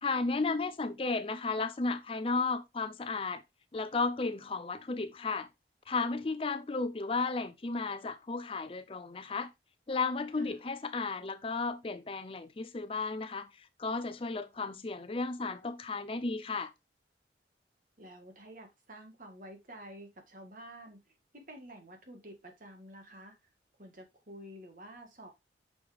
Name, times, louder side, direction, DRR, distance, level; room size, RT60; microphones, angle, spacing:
voice 1, 0.0-3.4 3.7-5.5 5.9-9.5 9.9-16.7, left 3 dB, 30° left, 0.4 m, -34 dB
voice 2, 18.0-21.0 21.3-23.4 23.8-25.3, right 1 dB, 45° right, 1.7 m, -50 dB
6.1 x 5.1 x 3.5 m
head